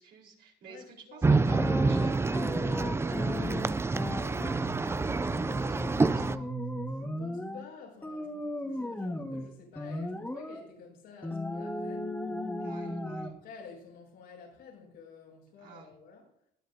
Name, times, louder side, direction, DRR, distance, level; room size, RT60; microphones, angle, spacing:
voice 1, 0.0-4.8 5.3-6.5 12.6-13.3 15.6-15.9, right 5 dB, 70° right, -2 dB, 4.5 m, -52 dB
voice 2, 0.6-1.4 6.1-12.2 12.7-13.0 13.2-16.3, left 5 dB, 85° left, -4 dB, 6.3 m, -51 dB
sound 1, 1.2-6.4, right 3 dB, 15° right, 0.4 m, -27 dB
sound 2, 1.3-7.7 8.0-9.5 9.8-10.7 11.2-13.3, left 1 dB, 10° left, 1.7 m, -36 dB
20.0 x 10.0 x 2.8 m, 0.70 s
cardioid pair, 110°, 17 cm